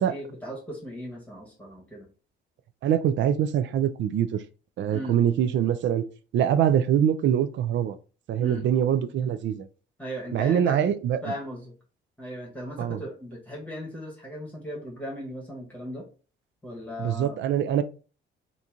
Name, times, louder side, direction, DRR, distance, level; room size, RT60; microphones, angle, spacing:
voice 1, 0.0-2.1 4.9-5.2 8.4-8.7 10.0-10.8 11.2-11.7 12.2-16.1 16.6-17.4, equal, 5° left, 1.1 m, -37 dB
voice 2, 2.8-4.4 4.8-6.1 6.3-8.0 8.3-9.7 10.3-11.2 12.8-13.0 17.0-17.8, right 9 dB, 70° right, 0.4 m, -24 dB
2.9 x 2.6 x 3.5 m
cardioid pair, 90°, 20 cm